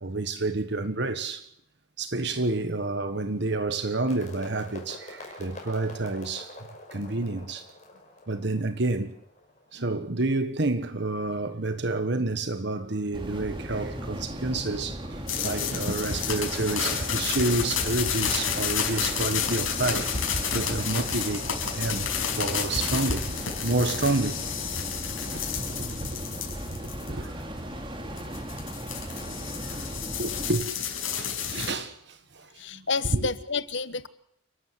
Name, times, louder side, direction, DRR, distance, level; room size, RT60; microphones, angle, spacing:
voice 1, 0.0-1.4 2.0-6.5 6.9-7.7 8.3-9.1 9.7-23.3 23.6-24.4 24.8-24.9 25.3-27.3 29.6-29.9 30.2-30.7 31.0-32.8 33.1-33.2, right 2 dB, 55° right, 1.4 m, -29 dB
sound 1, 4.1-10.0, left 1 dB, 35° left, 5.9 m, -45 dB
sound 2, 13.1-30.5, equal, 25° right, 3.2 m, -37 dB
sound 3, 15.3-27.2 28.2-31.7, left 7 dB, 75° left, 5.7 m, -30 dB
voice 2, 32.6-34.1, left 4 dB, 60° left, 1.2 m, -30 dB
29.0 x 13.0 x 8.0 m
head